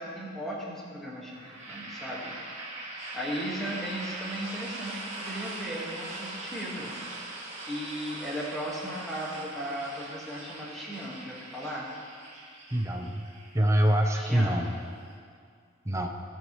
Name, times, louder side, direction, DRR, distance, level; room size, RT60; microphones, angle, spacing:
voice 1, 0.0-2.4 3.1-6.9 7.7-11.9 14.1-14.6, equal, ahead, -6 dB, 1.6 m, -36 dB
empty-toilet-cistern, 1.3-15.1, right 2 dB, 35° right, 1.6 m, -41 dB
voice 2, 12.7-13.2 13.5-14.7 15.8-16.1, right 1 dB, 15° right, 2 dB, 0.7 m, -25 dB
16.5 x 5.6 x 3.1 m, 2.2 s
head